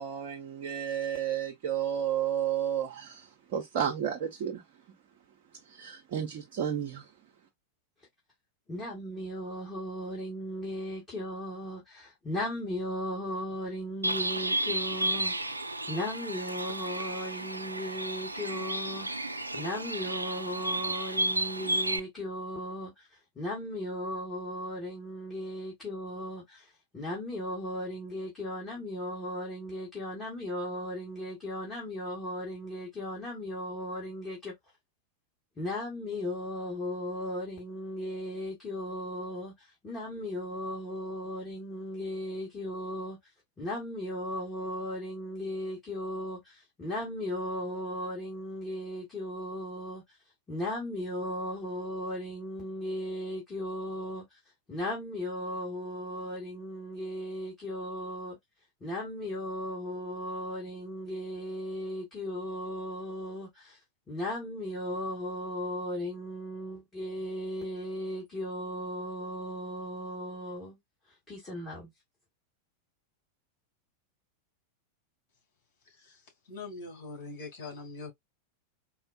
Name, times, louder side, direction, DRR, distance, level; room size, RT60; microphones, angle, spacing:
voice 1, 0.0-4.6 5.7-7.1, right 9 dB, 50° right, 0.8 m, -32 dB
voice 2, 8.7-15.5 15.9-19.1 19.5-23.1 23.4-34.5 35.6-43.2 43.6-50.0 50.5-54.2 54.7-58.4 58.8-63.8 64.1-70.8 71.3-71.9, equal, 20° left, 1.8 m, -36 dB
Bird, 14.0-22.0, right 1 dB, 85° right, 0.3 m, -32 dB
voice 3, 76.5-78.1, left 3 dB, 50° left, 2.2 m, -42 dB
4.4 x 2.4 x 2.4 m
figure-of-eight pair, 90°, 0 cm